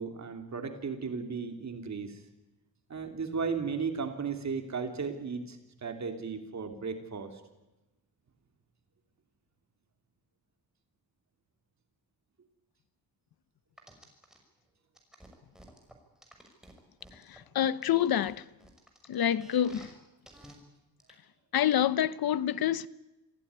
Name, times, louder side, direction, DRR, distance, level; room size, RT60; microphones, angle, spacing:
voice 1, 0.0-2.2 2.9-7.4, right 5 dB, 45° right, 3.1 m, -35 dB
sound 1, 13.8-14.4 14.9-17.4 17.8-19.9 20.3-20.5 21.0-21.1, right 1 dB, ahead, 6.0 m, -53 dB
voice 2, 17.3-18.4 19.1-19.9 21.5-22.9, left 10 dB, 65° left, 1.0 m, -27 dB
27.0 x 16.5 x 9.6 m
cardioid pair, 120°, 38 cm